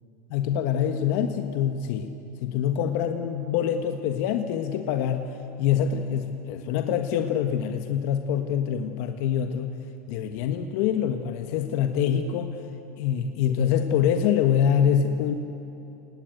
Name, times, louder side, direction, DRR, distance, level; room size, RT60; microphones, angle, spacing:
voice 1, 0.3-2.1 2.4-5.3 5.6-9.7 10.1-12.5 13.0-15.3, left 8 dB, 60° left, 6 dB, 1.5 m, -25 dB
29.5 x 19.0 x 8.1 m, 2.9 s
supercardioid pair, 120°, 10 cm